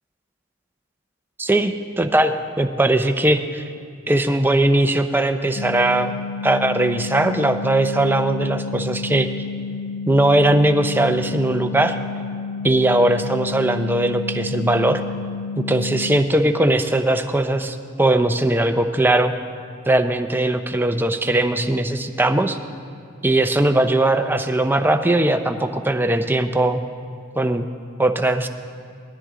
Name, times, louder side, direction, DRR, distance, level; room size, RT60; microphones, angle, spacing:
voice 1, 1.4-3.6 4.1-6.1 6.4-9.3 10.1-12.0 12.6-15.0 15.6-19.3 19.9-22.6 23.2-26.8 27.4-27.7 28.0-28.5, right 1 dB, 10° right, 7 dB, 0.5 m, -19 dB
sound 1, 5.6-16.2, left 5 dB, 75° left, 0.4 m, -31 dB
19.0 x 13.0 x 3.7 m, 2.3 s
head